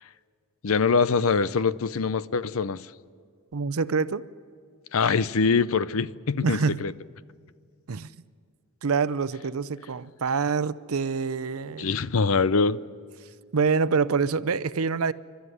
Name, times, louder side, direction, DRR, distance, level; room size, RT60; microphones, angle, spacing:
voice 1, 0.6-2.8 4.9-6.9 11.8-12.8, left 5 dB, 70° left, 0.6 m, -23 dB
voice 2, 3.5-4.2 6.4-6.8 7.9-8.1 8.8-11.9 13.5-15.1, right 5 dB, 80° right, 0.6 m, -26 dB
29.5 x 13.0 x 9.7 m
head